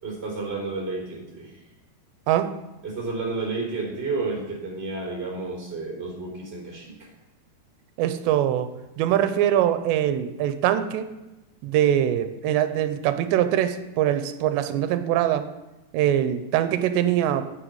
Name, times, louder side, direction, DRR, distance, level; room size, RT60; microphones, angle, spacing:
voice 1, 0.0-1.5 2.8-7.1, right 3 dB, 15° right, -2 dB, 3.3 m, -31 dB
voice 2, 8.0-8.7 9.0-11.1 11.6-15.5 15.9-17.5, right 11 dB, 90° right, 10 dB, 2.9 m, -23 dB
10.0 x 7.7 x 8.0 m, 1.0 s
omnidirectional pair, 4.9 m